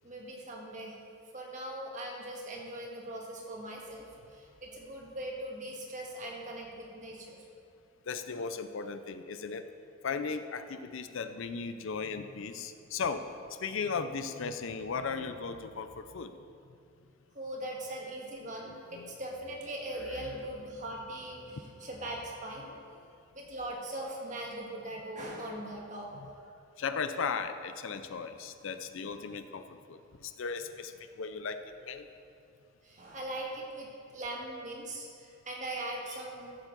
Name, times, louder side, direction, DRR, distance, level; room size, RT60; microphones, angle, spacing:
voice 1, 0.0-1.0 1.3-7.4 17.3-22.7 23.3-26.1 26.4-26.5 32.8-36.6, right 1 dB, 35° right, -1 dB, 1.5 m, -40 dB
voice 2, 8.1-9.7 10.0-13.2 13.6-16.4 18.6-19.2 19.9-20.4 26.8-32.1, left 5 dB, 70° left, 10 dB, 0.5 m, -37 dB
14.5 x 7.2 x 3.9 m, 2.5 s
head